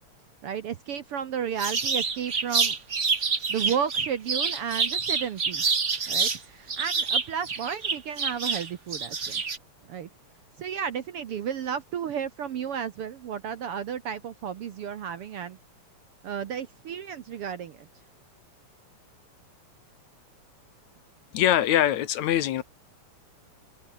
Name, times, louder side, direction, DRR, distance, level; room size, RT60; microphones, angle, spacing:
voice 1, 0.4-2.8 3.5-5.6 6.1-9.4 9.9-10.1 10.6-15.6 16.2-17.9, right 8 dB, 60° right, 1.7 m, -33 dB
sound 1, 1.6-6.4 6.7-9.6, right 5 dB, 30° right, 1.5 m, -27 dB
voice 2, 21.3-22.6, left 11 dB, 70° left, 2.3 m, -23 dB
omnidirectional pair, 3.6 m